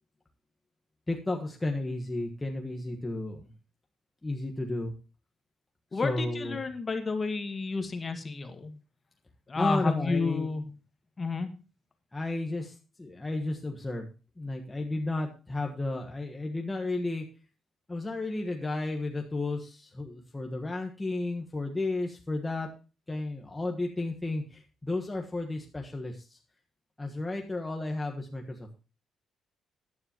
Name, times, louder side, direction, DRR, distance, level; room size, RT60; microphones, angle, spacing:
voice 1, 1.1-3.5 4.2-4.9 5.9-6.6 9.6-10.5 12.1-14.1 14.4-17.2 17.9-22.7 23.1-26.4 27.0-28.8, left 2 dB, 15° left, 1 dB, 1.4 m, -33 dB
voice 2, 5.9-8.7 9.5-10.6 11.2-11.5, left 4 dB, 30° left, 7 dB, 1.7 m, -31 dB
14.5 x 9.8 x 3.0 m, 0.33 s
cardioid pair, 90°, 0 cm